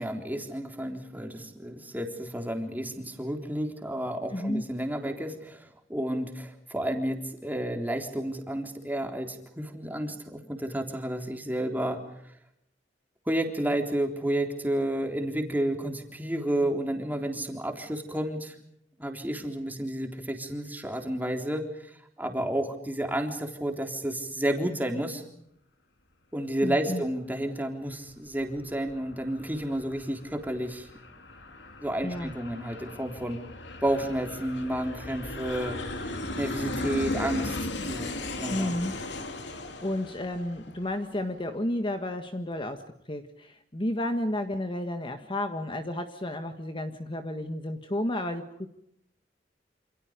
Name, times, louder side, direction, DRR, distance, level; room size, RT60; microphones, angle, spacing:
voice 1, 0.0-12.0 13.3-18.6 19.0-25.2 26.3-30.9 31.8-33.4 33.8-38.7, right 1 dB, 10° right, 3 dB, 3.7 m, -31 dB
voice 2, 4.3-4.6 26.6-27.0 32.0-32.3 38.5-39.0 39.6-48.7, left 1 dB, 30° left, 7 dB, 1.6 m, -32 dB
Aircraft, 28.1-41.3, left 2 dB, 70° left, 2.7 m, -37 dB
28.0 x 27.5 x 5.2 m, 0.74 s
head